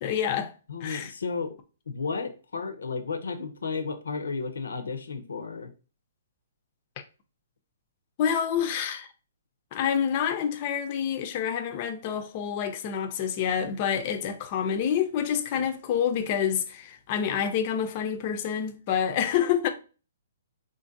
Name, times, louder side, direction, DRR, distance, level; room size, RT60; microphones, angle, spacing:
voice 1, 0.0-0.5 0.8-1.1 8.2-9.1 9.7-19.7, left 8 dB, 40° left, 0.4 m, -27 dB
voice 2, 0.7-1.5 1.9-5.7, left 4 dB, 90° left, 0.5 m, -33 dB
3.7 x 2.5 x 2.5 m
hypercardioid pair, 150°, 0 cm